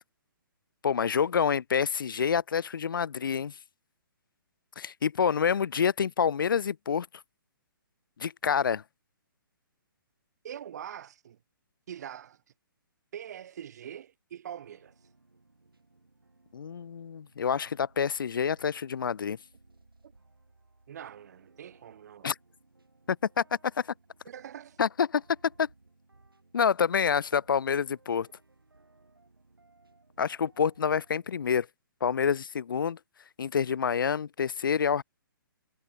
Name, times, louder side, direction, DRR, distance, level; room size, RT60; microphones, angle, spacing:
voice 1, 0.8-3.5 4.8-7.1 8.2-8.8 16.5-19.4 22.2-22.4 23.1-23.4 23.8-23.9 24.8-25.2 25.6-25.7 26.5-28.3 30.2-31.7 32.0-33.0 33.4-35.0, left 7 dB, 65° left, 0.4 m, -27 dB
voice 2, 10.4-11.4 11.9-12.4 13.1-14.9 20.9-22.3 24.3-24.8, right 9 dB, 50° right, 0.5 m, -43 dB
sound 1, 14.6-31.5, right 3 dB, 85° right, 3.3 m, -62 dB
figure-of-eight pair, 130°, 12 cm